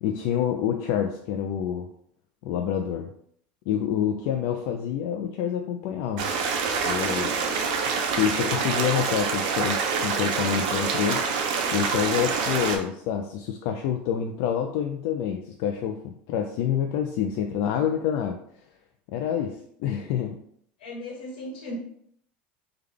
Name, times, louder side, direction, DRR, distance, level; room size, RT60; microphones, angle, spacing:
voice 1, 0.0-1.9 2.4-3.1 3.7-6.3 6.8-7.4 8.2-11.2 11.7-18.4 19.1-20.4, left 9 dB, 65° left, 4 dB, 0.3 m, -27 dB
sound 1, 6.2-12.8, right 5 dB, 70° right, 0.6 m, -26 dB
voice 2, 20.8-21.8, left 1 dB, 90° left, -1 dB, 1.3 m, -37 dB
3.4 x 2.2 x 3.6 m, 0.67 s
supercardioid pair, 115°, 5 cm